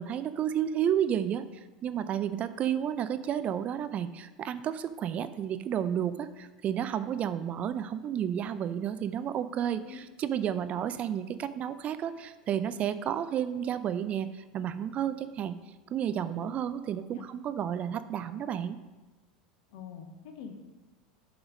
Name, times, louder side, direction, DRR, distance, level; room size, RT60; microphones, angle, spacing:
voice 1, 0.0-1.5 1.8-15.5 15.9-18.8, right 9 dB, 35° right, 12 dB, 0.4 m, -31 dB
voice 2, 19.7-20.6, left 7 dB, 60° left, 6 dB, 0.9 m, -45 dB
7.1 x 4.9 x 5.2 m, 1.2 s
figure-of-eight pair, 80°, 4 cm